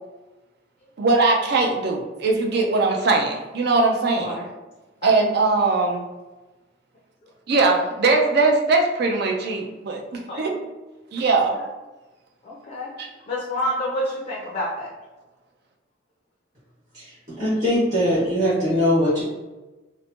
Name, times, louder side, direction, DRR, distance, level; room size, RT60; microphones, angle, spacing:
voice 1, 1.0-4.4 5.0-6.0 7.5-10.0 10.4-10.5 11.1-11.6 13.0-13.1, right 3 dB, 60° right, 2 dB, 0.5 m, -20 dB
voice 2, 5.0-5.3 10.3-10.4 11.3-11.7 12.4-12.9 13.3-14.9, equal, 40° left, -4 dB, 0.5 m, -29 dB
voice 3, 17.3-19.2, equal, 40° right, -11 dB, 1.4 m, -21 dB
3.0 x 2.1 x 2.8 m, 1.1 s
head